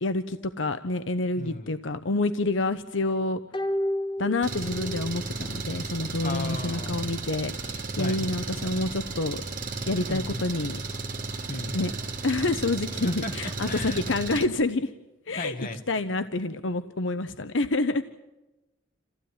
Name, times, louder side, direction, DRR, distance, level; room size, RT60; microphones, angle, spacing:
voice 1, 0.0-3.4 4.2-9.4 9.9-10.8 11.7-11.9 12.2-14.9 15.3-18.0, left 2 dB, 75° left, 10 dB, 0.9 m, -28 dB
voice 2, 1.4-1.7 6.2-7.1 8.0-8.3 10.1-10.5 11.5-11.9 13.0-13.3 13.6-14.0 15.3-15.8, left 2 dB, 45° left, 6 dB, 1.9 m, -35 dB
sound 1, 3.5-5.2 5.5-5.6, left 1 dB, 25° left, 1.6 m, -30 dB
Engine, 4.4-14.5, right 3 dB, 45° right, 3.3 m, -34 dB
28.0 x 15.5 x 9.8 m, 1.0 s
head